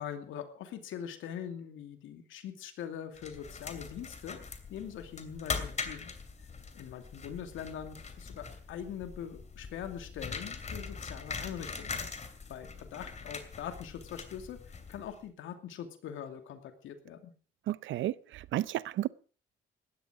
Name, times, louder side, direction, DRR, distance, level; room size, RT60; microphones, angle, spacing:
voice 1, 0.0-4.4 4.7-6.1 6.7-12.0 12.5-17.3, left 9 dB, 80° left, 2.6 m, -42 dB
sound 1, 3.1-15.2, left 4 dB, 35° left, 2.7 m, -42 dB
voice 2, 17.7-19.1, right 14 dB, 75° right, 0.6 m, -32 dB
17.0 x 13.0 x 5.0 m
cardioid pair, 90°, 20 cm